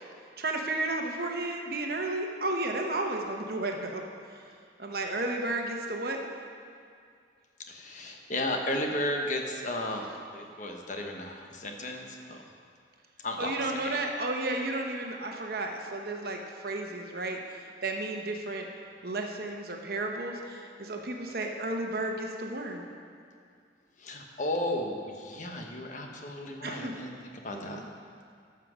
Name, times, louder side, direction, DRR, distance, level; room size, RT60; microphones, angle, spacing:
voice 1, 0.4-4.0 4.8-6.2 13.4-17.4 17.8-18.7 19.0-22.8 26.6-26.9 27.5-27.8, right 2 dB, 55° right, 2 dB, 1.0 m, -33 dB
voice 2, 7.7-12.4 13.2-14.0 24.0-27.1 27.4-27.8, left 1 dB, 45° left, 2 dB, 1.0 m, -34 dB
13.0 x 5.8 x 6.2 m, 2.2 s
head